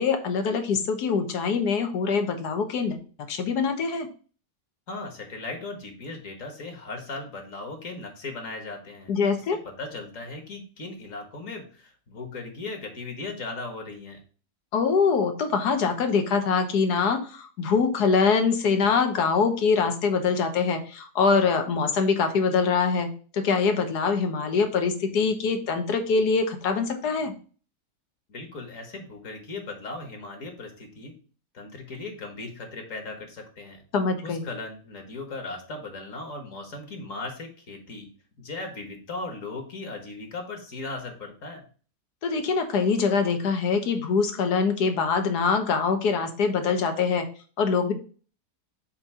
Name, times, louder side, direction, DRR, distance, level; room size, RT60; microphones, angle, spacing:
voice 1, 0.0-3.0 3.3-4.1 9.1-9.6 14.7-23.1 23.3-27.3 33.9-34.4 42.2-47.2 47.6-47.9, left 5 dB, 75° left, 6 dB, 1.5 m, -24 dB
voice 2, 4.9-14.2 28.3-31.1 31.5-33.8 34.2-38.1 38.4-41.6, left 3 dB, 50° left, 4 dB, 1.7 m, -37 dB
7.3 x 2.7 x 5.5 m, 0.39 s
omnidirectional pair, 1.8 m